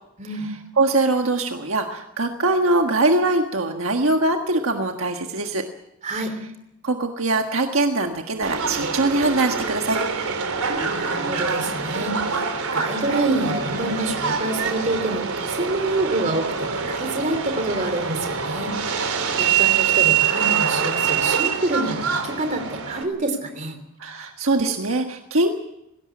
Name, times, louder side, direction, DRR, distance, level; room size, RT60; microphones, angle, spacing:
voice 1, 0.8-5.6 6.8-10.0 24.0-25.5, right 2 dB, 70° right, 4 dB, 1.5 m, -22 dB
voice 2, 6.0-6.4 10.8-12.4 12.7-18.8 19.4-23.8, right 2 dB, 35° right, 7 dB, 3.3 m, -27 dB
Subway metro underground, 8.4-23.0, right 7 dB, 90° right, 3.4 m, -24 dB
20.0 x 17.0 x 8.5 m, 0.83 s
head